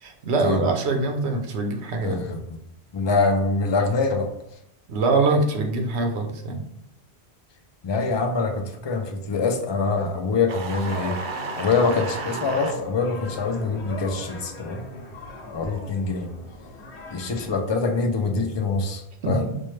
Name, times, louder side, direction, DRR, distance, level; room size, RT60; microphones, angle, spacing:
voice 1, 0.0-2.3 4.9-6.6 19.2-19.5, right 3 dB, 90° right, 4 dB, 1.0 m, -24 dB
voice 2, 2.0-2.6 2.9-4.3 7.8-11.2 11.6-14.9 15.5-16.3 17.1-19.5, left 4 dB, 50° left, 3 dB, 0.3 m, -24 dB
sound 1, 10.5-12.8, right 4 dB, 65° right, 0.7 m, -33 dB
sound 2, 10.9-17.5, left 2 dB, 90° left, 1.0 m, -39 dB
4.3 x 2.2 x 3.2 m, 0.78 s
omnidirectional pair, 1.1 m